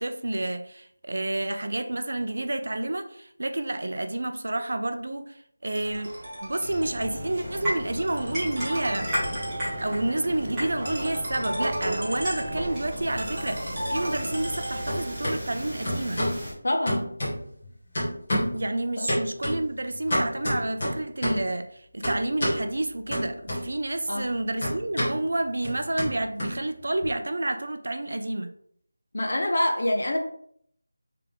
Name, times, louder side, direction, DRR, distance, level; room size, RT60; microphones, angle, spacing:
voice 1, 0.0-6.1 6.4-9.1 9.8-16.2 18.5-28.5, right 2 dB, 50° right, 0.4 m, -29 dB
Ringtone, 5.7-15.2, right 1 dB, 30° right, 1.2 m, -37 dB
sound 1, 6.6-16.5, equal, 5° right, 0.8 m, -34 dB
sound 2, 11.7-12.7 13.0-14.6 14.9-15.4 15.9-16.4 16.9-17.7 18.0-18.6 19.1-21.5 22.0-22.6 23.1-23.9 24.2-27.1, equal, 30° left, 1.4 m, -30 dB
voice 2, 16.6-17.1 19.0-19.1 24.1-24.3 29.1-30.2, left 1 dB, 50° left, 0.6 m, -25 dB
3.5 x 3.3 x 3.5 m
figure-of-eight pair, 180°, 0 cm